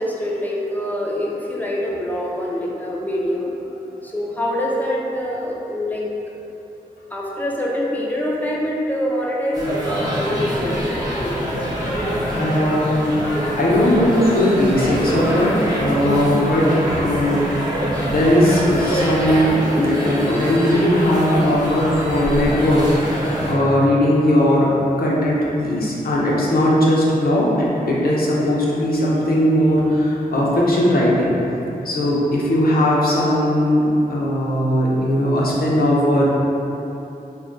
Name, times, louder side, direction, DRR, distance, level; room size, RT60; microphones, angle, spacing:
voice 1, 0.0-3.5 4.0-6.1 7.1-11.6 15.9-16.1, left 1 dB, 10° left, -4 dB, 0.4 m, -25 dB
sound 1, 9.5-23.5, equal, 25° right, 0.7 m, -24 dB
voice 2, 12.4-22.9 23.1-24.7 25.0-31.4 31.8-36.3, left 1 dB, 70° left, -5 dB, 0.6 m, -18 dB
2.3 x 2.2 x 3.7 m, 2.9 s
cardioid pair, 60°, 16 cm